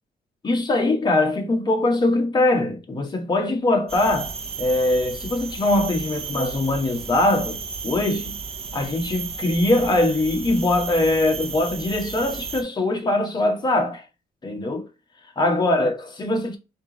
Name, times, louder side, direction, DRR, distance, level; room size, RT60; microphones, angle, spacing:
voice 1, 0.4-8.4 8.7-14.0 14.4-14.9 15.4-16.6, left 2 dB, 25° left, 1.2 m, -22 dB
sound 1, 3.9-12.6, right 5 dB, 40° right, 0.6 m, -33 dB
3.5 x 2.9 x 3.8 m
cardioid pair, 130°, 16 cm